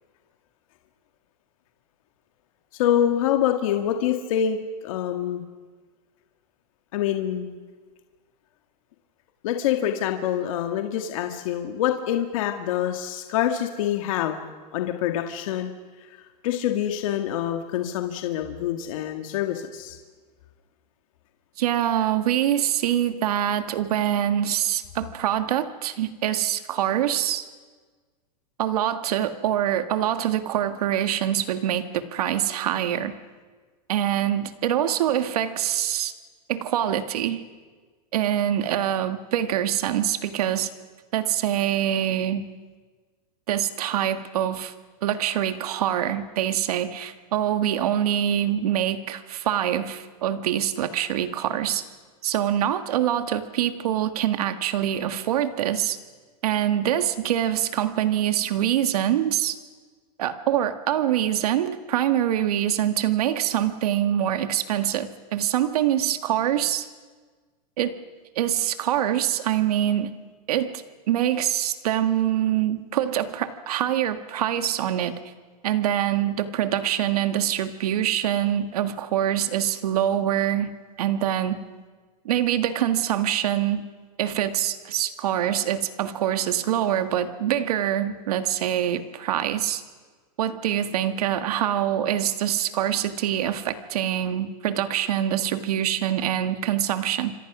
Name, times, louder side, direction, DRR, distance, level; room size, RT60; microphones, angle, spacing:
voice 1, 2.7-4.6 4.8-5.4 6.9-7.6 9.4-14.4 14.7-15.7 16.4-20.0, left 10 dB, 60° left, 4 dB, 1.9 m, -25 dB
voice 2, 21.6-27.4 28.6-33.1 33.9-36.1 36.5-37.4 38.1-40.7 41.1-42.4 43.5-44.7 45.0-51.8 52.2-56.0 56.4-59.6 60.2-66.9 67.8-68.0 68.3-70.1 70.5-75.1 75.6-80.7 81.0-81.6 82.2-83.8 84.2-89.8 90.4-97.3, right 11 dB, 70° right, 9 dB, 1.8 m, -24 dB
27.5 x 25.5 x 6.1 m, 1.4 s
supercardioid pair, 155°, 20 cm